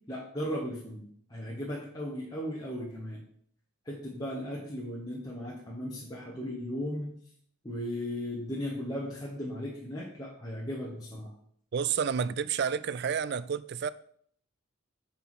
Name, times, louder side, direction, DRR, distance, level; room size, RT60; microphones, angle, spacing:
voice 1, 0.1-3.2 3.8-7.1 7.6-11.3, equal, 20° left, 1.1 m, -36 dB
voice 2, 11.7-13.9, right 7 dB, 50° right, 0.3 m, -30 dB
6.8 x 4.5 x 6.0 m
head